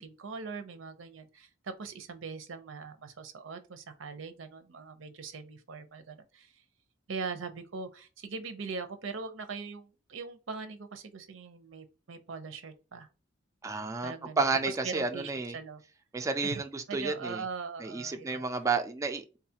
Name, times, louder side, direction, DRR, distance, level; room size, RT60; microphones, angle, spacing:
voice 1, 0.0-6.6 7.1-13.1 14.0-15.8 16.4-18.4, right 4 dB, 85° right, 0.6 m, -41 dB
voice 2, 13.6-15.6 16.1-17.4 17.8-19.4, right 4 dB, 15° right, 0.3 m, -31 dB
3.8 x 2.4 x 2.8 m
head